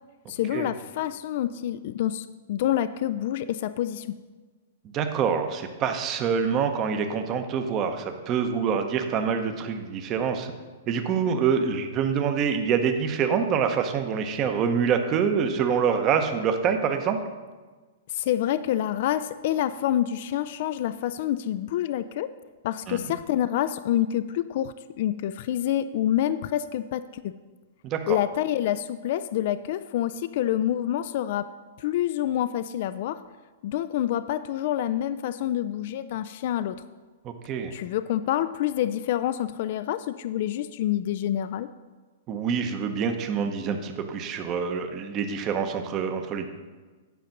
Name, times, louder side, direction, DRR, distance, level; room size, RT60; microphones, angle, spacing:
voice 1, 0.3-4.2 18.1-22.3 22.6-27.3 28.1-31.5 31.8-33.2 33.6-36.7 37.7-41.7, left 12 dB, 55° left, 13 dB, 0.3 m, -27 dB
voice 2, 4.9-10.5 10.9-17.2 22.9-23.0 27.8-28.2 37.2-37.7 42.3-46.5, right 6 dB, 30° right, 6 dB, 0.8 m, -26 dB
9.3 x 5.1 x 5.8 m, 1.3 s
hypercardioid pair, 145°, 0 cm